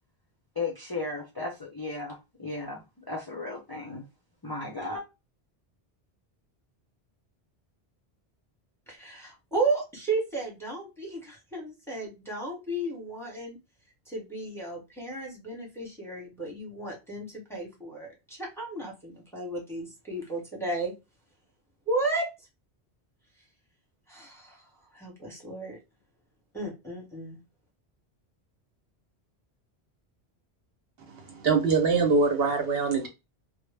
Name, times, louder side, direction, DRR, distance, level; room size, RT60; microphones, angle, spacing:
voice 1, 0.6-2.8 3.1-4.0 4.4-5.0, left 3 dB, 35° left, 0.4 m, -35 dB
voice 2, 8.9-13.6 14.1-20.9 21.9-22.3 24.1-24.6 24.9-25.8 26.5-27.4, right 2 dB, 5° left, 0.7 m, -33 dB
voice 3, 31.1-33.1, right 4 dB, 65° right, 0.8 m, -24 dB
2.0 x 2.0 x 3.1 m
omnidirectional pair, 1.1 m